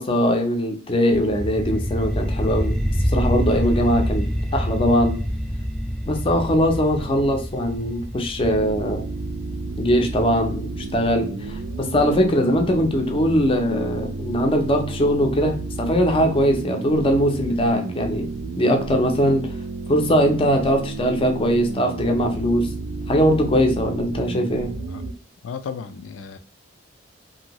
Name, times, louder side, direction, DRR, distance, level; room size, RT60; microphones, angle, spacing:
voice 1, 0.0-2.8 3.0-5.2 6.1-9.0 9.8-18.3 18.6-19.5 19.9-22.7 23.1-24.7, equal, 30° left, 0.5 m, -21 dB
sound 1, 1.1-12.1, equal, 5° left, 0.8 m, -27 dB
sound 2, 8.4-25.1, right 3 dB, 80° right, 0.4 m, -32 dB
voice 2, 25.4-26.4, left 6 dB, 90° left, 0.3 m, -34 dB
2.7 x 2.6 x 2.9 m
head